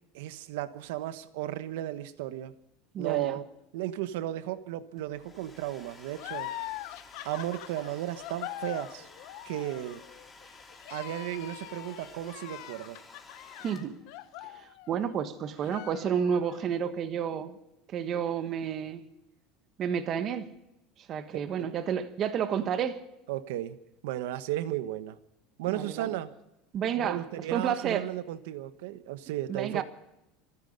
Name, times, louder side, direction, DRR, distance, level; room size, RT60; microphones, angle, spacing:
voice 1, 0.1-2.5 3.0-3.4 3.7-6.5 7.2-9.1 9.4-10.0 10.9-13.0 21.6-21.7 23.3-23.8 24.0-25.2 25.6-26.3 27.0-29.8, right 14 dB, 85° right, 1.2 m, -34 dB
voice 2, 2.9-3.4 13.6-14.0 14.4-17.6 17.9-19.0 19.8-20.5 21.1-23.0 25.7-26.2 26.7-27.2 27.5-28.1 29.5-29.8, right 8 dB, 35° right, 1.4 m, -30 dB
Domestic sounds home sounds, 5.0-14.2, left 3 dB, 15° left, 2.8 m, -53 dB
sound 1, 6.2-15.2 15.6-16.6, left 15 dB, 65° left, 1.2 m, -43 dB
26.5 x 9.9 x 5.4 m
cardioid pair, 150°, 0 cm